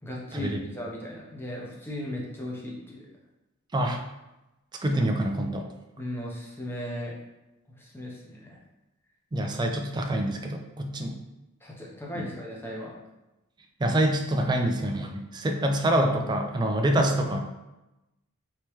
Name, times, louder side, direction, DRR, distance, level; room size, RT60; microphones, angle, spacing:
voice 1, 0.0-3.0 6.0-7.1 7.8-8.6 11.6-12.9, left 1 dB, 10° left, -4 dB, 0.7 m, -37 dB
voice 2, 4.8-5.7 9.3-11.2 12.1-12.3 13.8-17.4, right 1 dB, 20° right, 4 dB, 0.3 m, -26 dB
3.3 x 2.8 x 3.0 m, 0.98 s
head